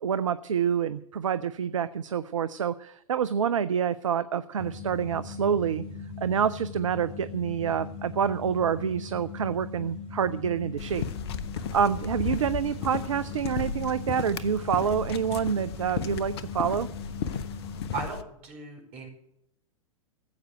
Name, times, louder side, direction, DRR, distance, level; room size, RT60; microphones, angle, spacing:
voice 1, 0.0-5.8 6.2-11.0 11.7-16.9, right 7 dB, 65° right, 15 dB, 0.6 m, -27 dB
sound 1, 4.6-18.1, left 4 dB, 30° left, 2.2 m, -40 dB
sound 2, 10.8-18.2, left 7 dB, 50° left, 0.9 m, -35 dB
voice 2, 17.9-19.1, right 4 dB, 35° right, 2 dB, 4.8 m, -37 dB
14.5 x 8.1 x 8.1 m, 0.75 s
figure-of-eight pair, 100°, 18 cm